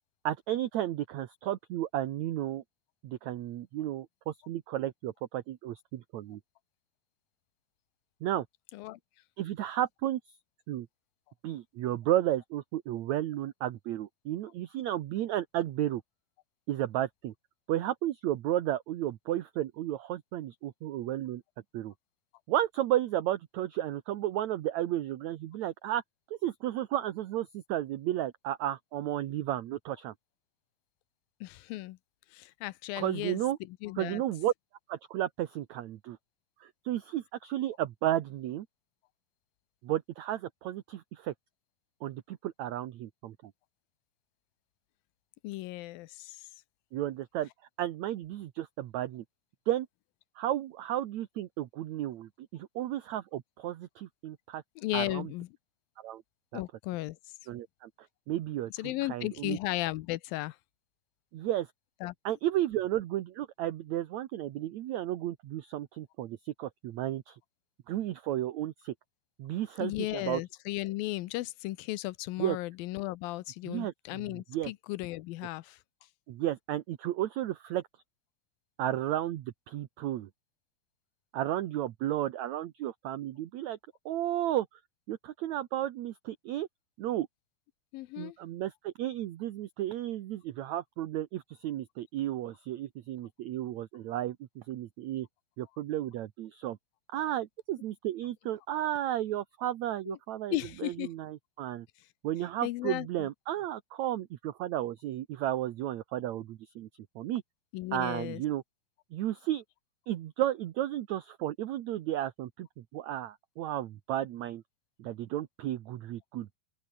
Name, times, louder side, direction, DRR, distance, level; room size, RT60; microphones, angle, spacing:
voice 1, 0.2-2.6 3.0-6.4 8.2-8.5 9.4-10.4 10.7-10.9 11.4-16.0 16.7-17.3 17.7-21.4 21.7-21.9 22.5-26.0 26.3-30.1 33.0-33.6 34.0-34.5 34.9-36.2 36.6-38.7 39.8-41.3 42.0-43.5 46.9-47.5 47.8-49.2 49.7-49.9 50.4-54.6 54.9-55.3 56.0-56.2 56.5-56.6 57.5-58.7 59.1-59.6 61.3-61.7 62.3-67.4 67.9-68.9 69.4-70.4 72.4-72.6 73.7-74.2 74.5-74.7 76.3-77.8 78.8-80.3 81.3-83.8 84.1-84.7 85.1-86.7 87.0-87.3 88.2-95.3 95.6-96.8 97.1-101.9 102.2-106.9 107.2-107.4 107.9-108.6 109.1-109.6 110.1-114.6 115.0-116.6, right 13 dB, 70° right, 1.9 m, -33 dB
voice 2, 31.4-32.0 32.3-34.2 45.4-46.5 54.8-55.5 56.5-57.2 58.7-60.6 62.0-62.4 69.8-75.8 87.9-88.4 100.1-100.2 100.5-101.1 102.6-103.3 107.7-108.4, left 18 dB, 80° left, 2.4 m, -35 dB
open air
omnidirectional pair, 4.3 m